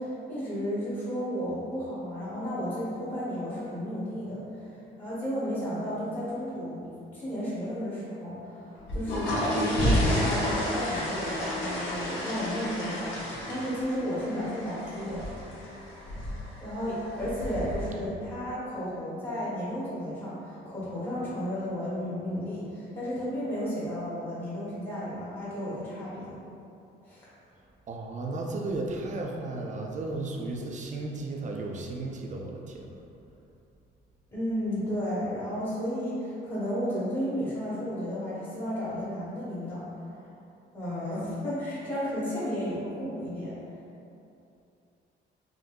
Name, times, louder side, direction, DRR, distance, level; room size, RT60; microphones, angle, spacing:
voice 1, 0.0-4.4 5.0-15.2 16.6-26.4 27.0-27.2 34.3-39.9 40.7-43.6, equal, 25° left, -11 dB, 1.0 m, -33 dB
sound 1, 8.8-17.8, equal, 75° left, 0.9 m, -31 dB
voice 2, 27.9-32.9, right 2 dB, 40° right, 0 dB, 0.4 m, -34 dB
3.7 x 2.6 x 2.3 m, 2.7 s
cardioid pair, 90°, 20 cm